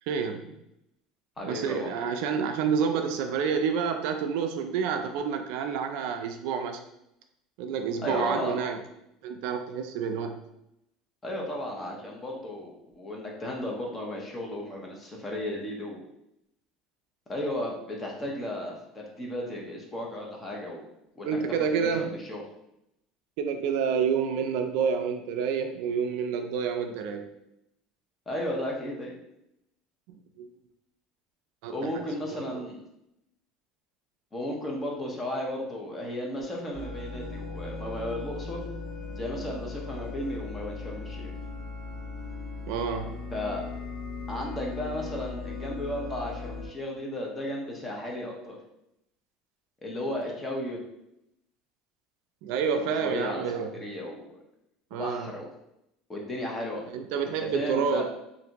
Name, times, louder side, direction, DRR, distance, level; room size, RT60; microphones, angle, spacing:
voice 1, 0.1-0.5 1.4-6.8 7.6-8.8 9.2-10.4 21.2-22.1 23.4-27.3 30.1-30.5 31.6-32.0 32.3-32.5 42.6-43.2 52.4-53.7 54.9-55.3 56.9-58.0, right 6 dB, 65° right, 6 dB, 0.3 m, -29 dB
voice 2, 1.4-1.9 8.0-8.6 11.2-16.0 17.3-20.8 21.2-21.4 21.7-22.4 28.3-29.2 31.7-32.8 34.3-38.6 39.2-41.3 43.3-43.6 44.3-48.6 49.8-50.8 52.7-53.4 53.7-54.3 54.9-55.5 56.1-56.8 57.3-58.0, left 1 dB, 15° left, -1 dB, 0.6 m, -34 dB
sound 1, 36.7-46.7, left 4 dB, 5° right, 1.4 m, -38 dB
3.3 x 2.5 x 2.9 m, 0.82 s
cardioid pair, 165°, 0 cm